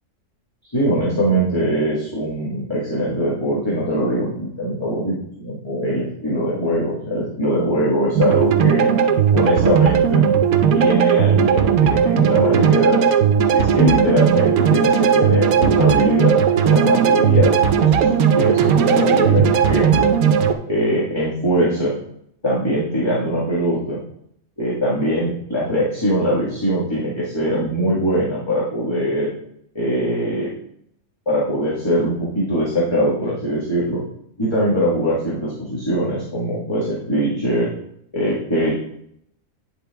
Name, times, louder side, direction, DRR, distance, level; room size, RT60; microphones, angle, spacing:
voice 1, 0.7-8.9 9.3-10.2 10.7-18.0 18.3-20.1 20.7-21.9 22.4-24.0 24.6-29.3 29.7-30.5 31.2-34.0 34.4-37.7 38.1-38.7, equal, 20° left, -7 dB, 1.5 m, -21 dB
sound 1, 8.2-20.5, right 7 dB, 85° right, 1.1 m, -16 dB
10.0 x 4.0 x 3.4 m, 0.72 s
omnidirectional pair, 1.5 m